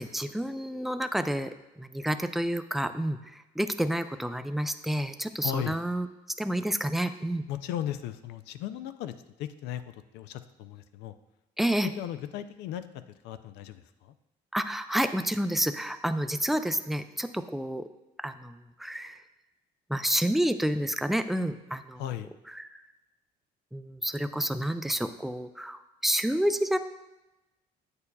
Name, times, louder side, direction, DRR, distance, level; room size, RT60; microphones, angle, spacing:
voice 1, 0.0-1.5 1.8-6.1 6.4-7.4 11.6-11.9 14.5-17.9 18.2-19.2 19.9-22.0 22.5-22.7 23.7-26.8, right 1 dB, ahead, 10 dB, 0.3 m, -29 dB
voice 2, 5.4-5.8 7.5-11.1 11.8-12.8 13.2-14.1 22.0-22.3, left 11 dB, 85° left, 11 dB, 0.4 m, -36 dB
8.3 x 6.8 x 2.3 m, 0.99 s
cardioid pair, 110°, 17 cm